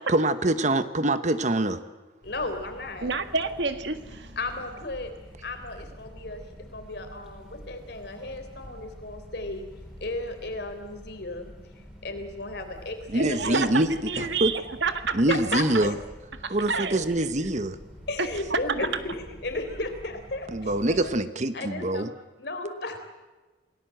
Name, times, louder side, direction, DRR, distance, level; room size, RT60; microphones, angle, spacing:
voice 1, 0.1-1.8 13.1-13.9 14.2-14.5 15.1-15.9 16.5-17.8 20.5-22.1, right 1 dB, 40° right, 12 dB, 1.1 m, -24 dB
voice 2, 2.2-3.1 4.4-5.1 5.4-9.6 10.0-11.5 12.0-13.8 14.1-14.3 15.3-15.9 16.6-16.7 18.1-21.1 21.5-22.1 22.4-23.0, left 2 dB, 60° left, 6 dB, 3.9 m, -34 dB
sound 1, 2.2-21.2, equal, 5° right, 4.9 m, -47 dB
voice 3, 3.0-4.4 13.2-15.2 15.5-15.9 16.4-17.1 18.2-18.9, right 4 dB, 75° right, 9 dB, 1.8 m, -29 dB
27.5 x 18.5 x 7.9 m, 1.2 s
head